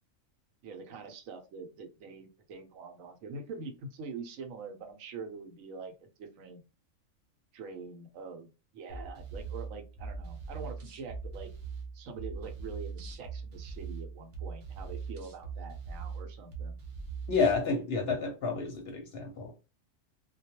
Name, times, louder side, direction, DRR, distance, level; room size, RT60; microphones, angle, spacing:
voice 1, 0.6-6.6 7.5-11.5 11.9-16.8, right 4 dB, 80° right, 5 dB, 1.0 m, -44 dB
sound 1, 8.9-17.6, right 5 dB, 50° right, 0.6 m, -41 dB
voice 2, 17.3-19.5, left 4 dB, 60° left, 3 dB, 0.7 m, -30 dB
2.2 x 2.2 x 2.8 m, 0.30 s
omnidirectional pair, 1.4 m